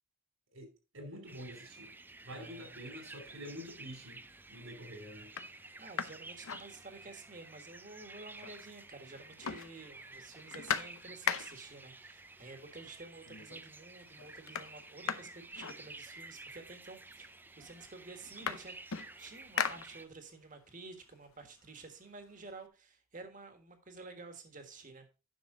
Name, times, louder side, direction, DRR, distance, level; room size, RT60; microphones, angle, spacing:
voice 1, 0.5-1.9 2.2-4.2 4.5-5.3, equal, 75° right, 3.2 m, -47 dB
sound 1, 1.3-20.1, right 3 dB, 10° right, 0.4 m, -52 dB
voice 2, 2.3-2.8 5.8-18.8 19.2-25.0, right 3 dB, 40° right, 1.6 m, -51 dB
sound 2, 3.8-4.3 4.8-4.9 5.2-7.3 7.6-7.7 8.0-8.8 9.1-11.8 12.8-12.9 13.3-13.7 14.0-16.4 17.2-17.3 17.6-20.4 20.9-22.6, left 7 dB, 85° left, 0.7 m, -40 dB
10.5 x 6.1 x 3.9 m
head